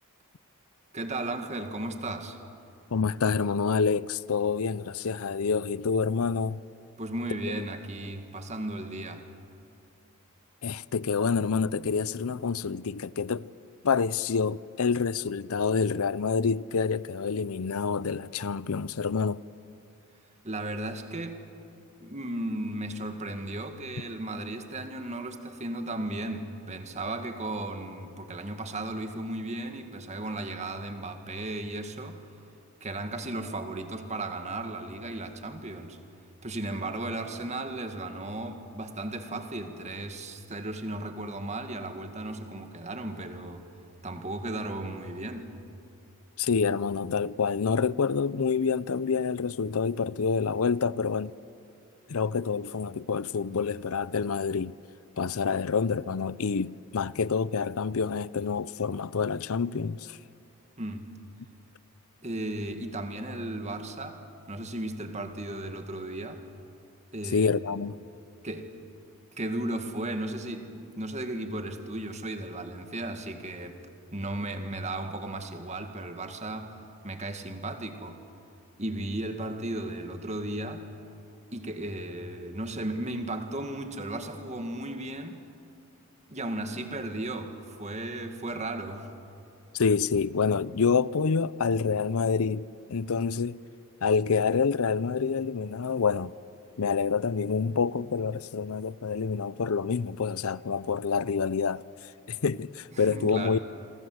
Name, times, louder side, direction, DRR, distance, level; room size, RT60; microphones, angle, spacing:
voice 1, 0.9-2.4 7.0-9.3 20.4-21.4 22.0-32.2 32.8-36.0 36.4-43.6 44.0-45.5 60.8-61.0 62.2-64.2 64.5-66.4 67.1-67.5 68.4-68.7 69.4-73.8 74.1-76.7 77.0-78.2 78.8-80.9 81.5-85.4 86.3-89.1 102.9-103.6, right 1 dB, 30° right, 2.0 m, -35 dB
voice 2, 2.9-6.6 10.6-13.5 13.8-19.4 46.4-51.3 52.1-54.7 55.2-60.2 67.3-68.0 89.7-93.6 94.0-96.3 96.8-101.8 102.3-103.6, left 5 dB, 70° left, 0.6 m, -27 dB
28.0 x 23.5 x 8.0 m
head